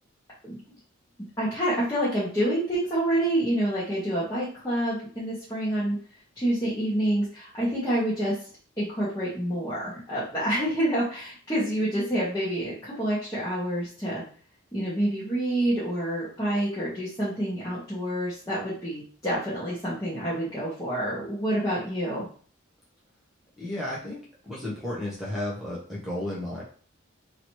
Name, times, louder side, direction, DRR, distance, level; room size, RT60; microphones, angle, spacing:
voice 1, 1.4-6.0 6.3-8.3 8.8-14.2 14.7-22.3, right 1 dB, 15° left, -10 dB, 1.2 m, -27 dB
voice 2, 23.6-26.6, left 1 dB, ahead, -7 dB, 0.9 m, -33 dB
3.0 x 2.8 x 3.0 m, 0.43 s
head